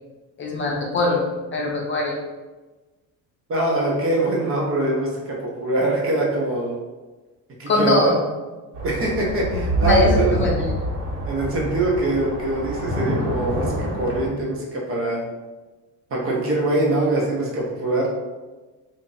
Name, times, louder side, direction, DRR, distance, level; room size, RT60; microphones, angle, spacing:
voice 1, 0.4-2.2 7.7-8.2 9.8-10.7, left 2 dB, 35° left, -1 dB, 0.5 m, -21 dB
voice 2, 3.5-6.8 7.6-8.1 8.8-10.4 11.2-15.2 16.1-18.1, right 2 dB, 40° right, -3 dB, 0.8 m, -23 dB
sound 1, 8.7-14.3, right 1 dB, 60° right, 1.4 m, -26 dB
2.9 x 2.6 x 3.8 m, 1.2 s
cardioid pair, 145°, 36 cm